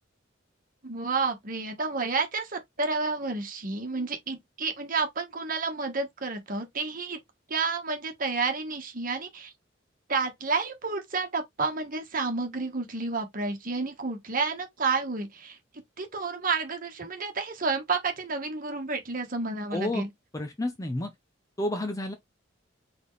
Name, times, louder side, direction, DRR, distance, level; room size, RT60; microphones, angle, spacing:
voice 1, 0.8-7.2 7.5-9.5 10.1-15.6 16.0-20.1, right 4 dB, 45° right, 1.3 m, -30 dB
voice 2, 19.7-20.1 20.3-21.1 21.6-22.1, left 1 dB, 20° left, 0.6 m, -30 dB
4.3 x 3.5 x 3.1 m
head